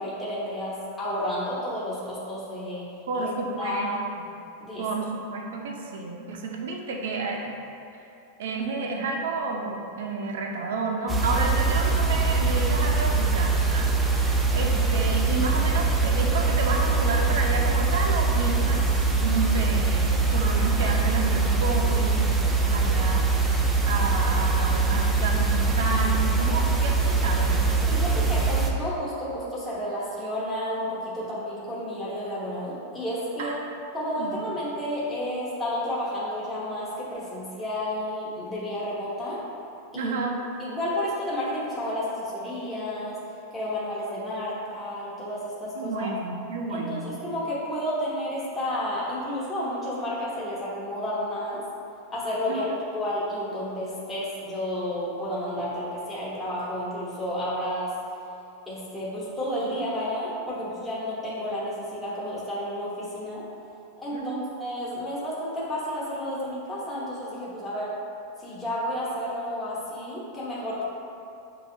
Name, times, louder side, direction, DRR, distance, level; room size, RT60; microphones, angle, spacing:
voice 1, 0.0-2.9 3.2-3.3 3.6-4.1 4.6-4.8 12.3-12.6 27.8-33.5 33.9-39.4 39.9-40.2 40.6-43.2 43.5-46.1 46.7-51.6 52.1-52.7 52.9-57.9 58.7-63.4 64.0-64.3 64.6-67.9 68.4-70.8, left 1 dB, 10° left, -9 dB, 1.1 m, -31 dB
voice 2, 3.1-3.9 4.8-7.5 8.4-18.8 19.2-27.8 33.4-33.5 34.2-34.4 39.9-40.4 45.8-47.2 52.5-52.7 64.1-64.5, right 3 dB, 75° right, 1 dB, 0.6 m, -31 dB
sound 1, 11.1-28.7, right 4 dB, 10° right, 0.3 m, -23 dB
7.5 x 2.6 x 2.7 m, 2.7 s
supercardioid pair, 160°, 0 cm